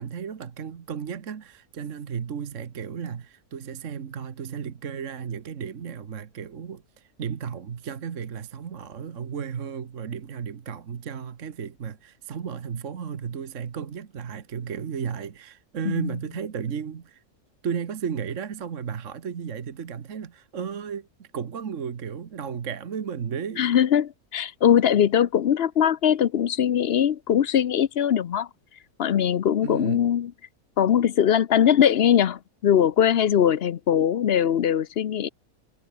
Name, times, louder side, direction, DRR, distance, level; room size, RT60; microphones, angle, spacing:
voice 1, 0.0-17.2 17.6-23.7 29.6-30.1, right 7 dB, 55° right, 1.5 m, -34 dB
voice 2, 23.6-28.5 29.0-30.3 30.8-35.3, left 9 dB, 55° left, 0.7 m, -21 dB
omnidirectional pair, 1.7 m